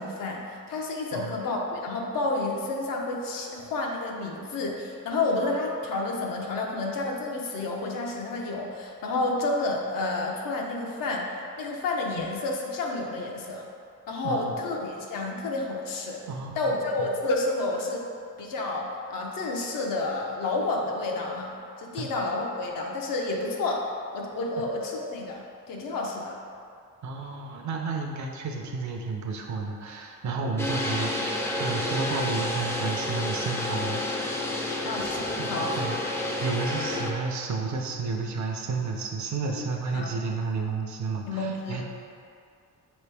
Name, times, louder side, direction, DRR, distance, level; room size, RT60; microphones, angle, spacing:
voice 1, 0.0-11.3 11.6-13.6 14.1-16.2 16.5-18.0 18.4-23.9 24.1-26.4 34.8-36.0 39.9-40.1 41.3-41.8, left 2 dB, 80° left, -1 dB, 0.7 m, -30 dB
voice 2, 16.3-16.7 22.0-22.1 27.0-34.0 35.4-41.8, right 4 dB, 60° right, 2 dB, 0.6 m, -31 dB
sound 1, 30.6-37.1, left 1 dB, 10° left, 0.3 m, -30 dB
5.2 x 3.1 x 3.3 m, 2.3 s
cardioid pair, 120°, 33 cm